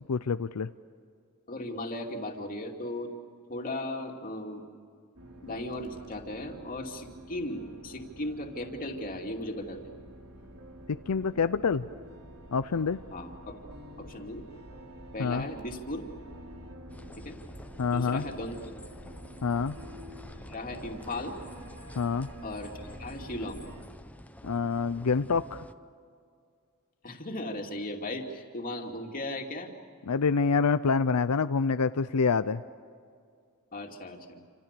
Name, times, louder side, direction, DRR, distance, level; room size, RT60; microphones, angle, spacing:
voice 1, 0.1-0.7 10.9-11.9 12.5-13.0 15.2-15.4 17.8-18.2 19.4-19.8 22.0-22.3 24.4-25.6 30.1-32.6, left 5 dB, 90° left, 12 dB, 0.6 m, -27 dB
voice 2, 1.5-3.1 3.5-4.7 5.4-9.8 13.1-13.6 14.0-14.5 15.1-16.0 17.2-17.4 17.9-18.8 20.5-21.3 22.4-23.7 27.0-29.7 33.7-34.4, left 1 dB, 40° left, 2 dB, 2.7 m, -37 dB
sound 1, 5.2-23.8, right 1 dB, 80° right, 3.4 m, -47 dB
sound 2, 16.9-25.7, left 1 dB, 5° left, 0.7 m, -49 dB
29.0 x 27.0 x 6.9 m, 2.2 s
head